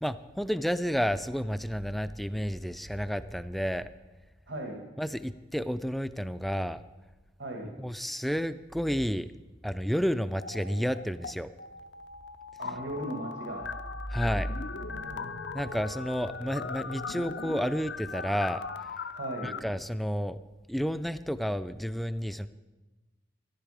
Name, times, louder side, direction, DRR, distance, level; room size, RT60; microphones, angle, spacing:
voice 1, 0.0-3.9 5.0-6.8 7.8-9.3 9.6-11.5 14.1-14.5 15.5-18.9 19.4-20.4 20.7-22.5, equal, ahead, 13 dB, 0.3 m, -31 dB
voice 2, 4.5-4.9 7.4-7.7 12.6-13.7 14.1-15.3 19.1-19.6, right 1 dB, 90° right, 1 dB, 1.7 m, -38 dB
sound 1, 10.4-11.3 11.6-19.6, left 4 dB, 70° left, 0.6 m, -39 dB
14.0 x 11.0 x 4.9 m, 1.2 s
head